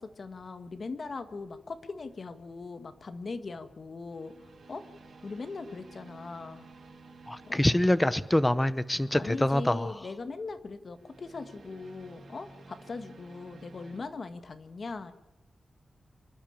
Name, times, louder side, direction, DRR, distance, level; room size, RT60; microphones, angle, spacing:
voice 1, 0.0-4.8 5.2-6.7 7.5-7.6 9.1-15.1, left 4 dB, 50° left, 9 dB, 1.6 m, -40 dB
sound 1, 2.1-2.4 4.1-9.2 10.9-14.0, right 3 dB, 70° right, 5.0 m, -53 dB
voice 2, 7.3-9.9, left 1 dB, 10° left, 15 dB, 0.8 m, -25 dB
26.5 x 12.0 x 8.8 m, 0.99 s
wide cardioid pair, 120°, 0 cm